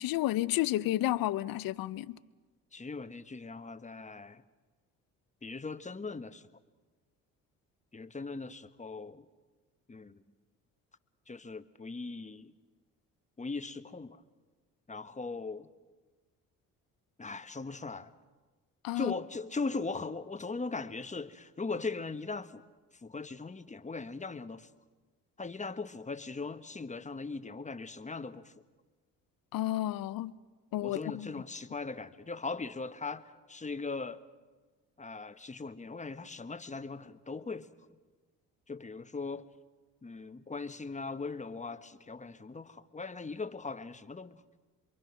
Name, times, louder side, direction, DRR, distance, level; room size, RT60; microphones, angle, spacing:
voice 1, 0.0-2.2 18.8-19.1 29.5-30.3 30.7-31.3, left 15 dB, 70° left, 0.8 m, -31 dB
voice 2, 2.7-4.4 5.4-6.5 7.9-9.3 9.9-10.2 11.3-12.5 13.4-14.2 14.9-15.7 17.2-18.1 18.9-22.6 22.9-24.7 25.4-28.5 30.8-34.2 35.0-37.7 38.7-39.5 40.0-44.4, left 4 dB, 20° left, 1.2 m, -39 dB
27.5 x 23.0 x 6.1 m
supercardioid pair, 60°, 36 cm